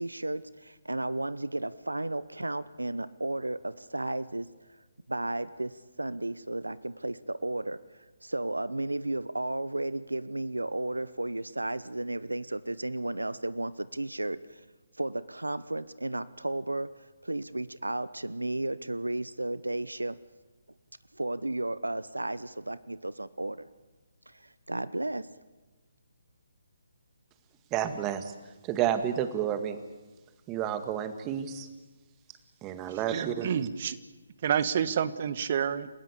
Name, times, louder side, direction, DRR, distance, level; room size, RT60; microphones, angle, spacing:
voice 1, 0.0-4.5 5.1-14.6 15.0-20.2 21.1-23.7 24.3-25.3, right 2 dB, 90° right, 18 dB, 0.8 m, -33 dB
voice 2, 27.7-28.3 28.6-29.8 30.5-31.7 32.6-33.5, right 10 dB, 20° right, 10 dB, 1.8 m, -30 dB
voice 3, 33.1-34.0 34.4-35.9, right 8 dB, 45° right, 15 dB, 1.3 m, -28 dB
29.0 x 16.0 x 8.4 m, 1.2 s
figure-of-eight pair, 140°, 0 cm